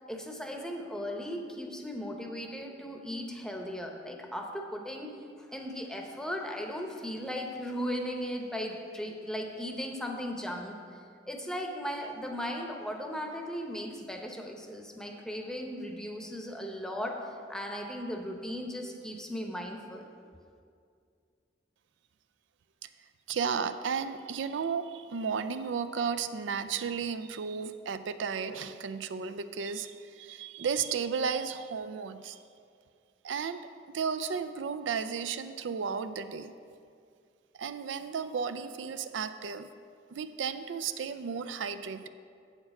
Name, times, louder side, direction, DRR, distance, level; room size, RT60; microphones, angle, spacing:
voice 1, 0.1-5.1 5.4-10.8 11.2-20.1, equal, 5° left, 2 dB, 0.7 m, -37 dB
voice 2, 23.3-32.4 33.2-33.6 33.9-36.5 37.6-39.7 40.1-42.1, right 6 dB, 85° right, 11 dB, 0.4 m, -34 dB
8.2 x 7.2 x 5.3 m, 2.3 s
head